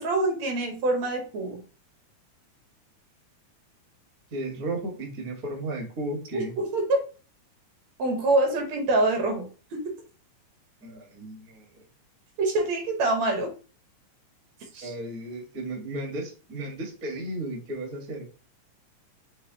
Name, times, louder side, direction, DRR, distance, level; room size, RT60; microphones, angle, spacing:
voice 1, 0.0-1.6 6.3-7.0 8.0-10.0 12.4-13.5 14.7-14.9, right 2 dB, 70° right, 3 dB, 2.2 m, -25 dB
voice 2, 4.3-6.5 10.8-11.6 14.8-18.3, right 1 dB, 50° right, 2 dB, 1.0 m, -34 dB
6.4 x 3.0 x 2.7 m, 0.35 s
omnidirectional pair, 3.4 m